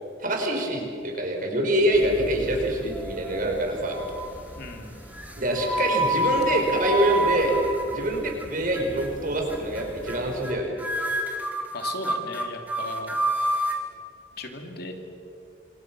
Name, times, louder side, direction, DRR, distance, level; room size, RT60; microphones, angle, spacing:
voice 1, 0.2-4.0 5.4-7.5 7.9-10.7, right 1 dB, 45° right, 2 dB, 5.3 m, -25 dB
sound 1, 1.9-10.5, equal, 10° left, 3.4 m, -43 dB
sound 2, 2.9-3.5 3.9-4.4 5.1-8.4 8.7-9.1 9.5-9.8 10.1-10.5 10.8-13.8, right 1 dB, 10° right, 2.7 m, -28 dB
voice 2, 4.6-4.9 11.7-13.1 14.4-14.9, left 2 dB, 55° left, 3 dB, 3.0 m, -36 dB
27.5 x 26.5 x 6.3 m, 2.5 s
head